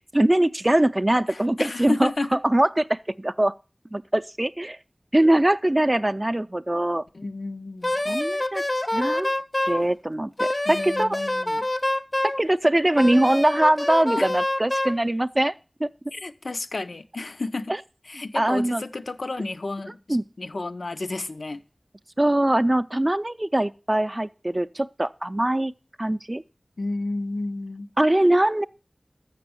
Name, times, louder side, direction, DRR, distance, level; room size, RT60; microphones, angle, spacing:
voice 1, 0.1-2.1 2.4-3.5 3.9-4.8 5.1-7.0 8.1-8.6 8.9-9.3 9.6-11.2 12.4-15.5 15.8-15.9 18.3-18.8 20.1-20.2 22.2-25.7 26.0-26.4 28.0-28.6, right 1 dB, 30° right, 0.4 m, -22 dB
voice 2, 1.3-2.4 7.1-8.0 10.7-11.7 14.2-14.3 16.1-17.7 18.1-21.6 26.8-27.9, left 2 dB, 85° left, 0.5 m, -31 dB
Wind instrument woodwind instrument, 7.8-9.8 10.4-12.4 13.0-15.0, left 1 dB, 35° left, 0.6 m, -26 dB
6.8 x 6.5 x 6.9 m
wide cardioid pair, 45°, 0 cm